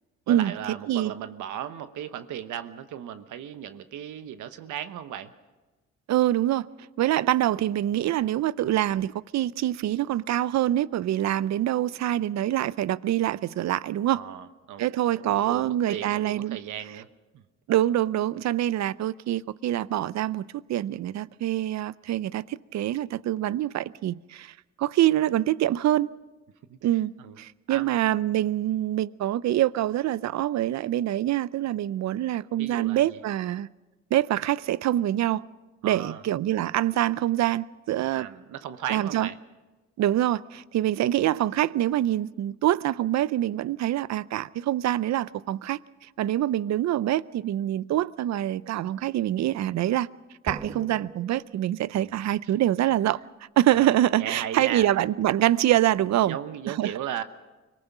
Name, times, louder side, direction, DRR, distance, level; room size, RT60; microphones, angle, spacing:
voice 1, 0.3-5.3 14.1-14.9 15.2-17.1 17.3-17.4 26.7-26.8 27.2-27.4 27.7-28.0 32.6-33.2 35.8-36.2 38.1-39.4 51.9-52.2 53.7-53.9 54.2-54.9 56.2-57.2, right 10 dB, 80° right, 1.1 m, -36 dB
voice 2, 6.1-6.7 7.0-14.2 14.8-16.6 17.7-26.1 26.8-27.1 27.4-33.7 34.1-35.4 35.8-38.3 38.9-39.3 40.0-45.8 46.2-50.1 50.4-53.2 53.6-56.4 56.7-56.9, right 13 dB, 65° right, 0.6 m, -25 dB
sound 1, 50.5-52.2, right 3 dB, 10° right, 1.3 m, -41 dB
24.5 x 18.5 x 6.0 m
cardioid pair, 90°, 30 cm